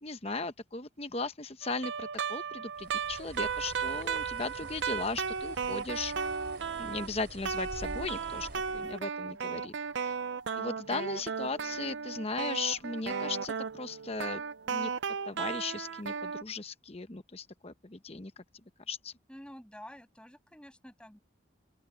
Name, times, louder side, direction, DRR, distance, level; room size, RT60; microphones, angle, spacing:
voice 1, 0.0-6.1 6.8-10.1 10.6-14.9 15.3-18.4 18.9-19.1, left 3 dB, 30° left, 1.0 m, -37 dB
sound 1, 1.6-7.1 7.4-16.4, right 6 dB, 75° right, 0.5 m, -35 dB
Bird, 2.8-9.0, right 1 dB, 60° right, 3.7 m, -47 dB
voice 2, 19.3-21.2, equal, 5° left, 6.7 m, -49 dB
open air
head